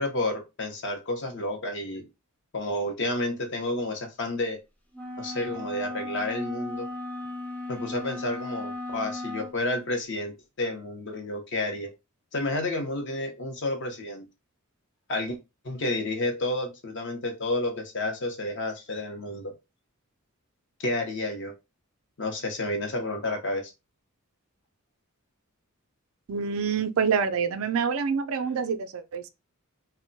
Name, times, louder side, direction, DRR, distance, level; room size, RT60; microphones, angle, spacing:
voice 1, 0.0-2.1 2.5-4.6 5.2-6.9 7.7-11.9 12.3-14.3 15.1-15.4 15.6-19.5 20.8-21.5 22.2-23.7, left 2 dB, 55° left, 0.7 m, -30 dB
sound 1, 4.9-9.6, left 2 dB, 5° left, 0.4 m, -36 dB
voice 2, 26.3-29.3, right 6 dB, 65° right, 0.4 m, -27 dB
2.2 x 2.2 x 3.8 m
head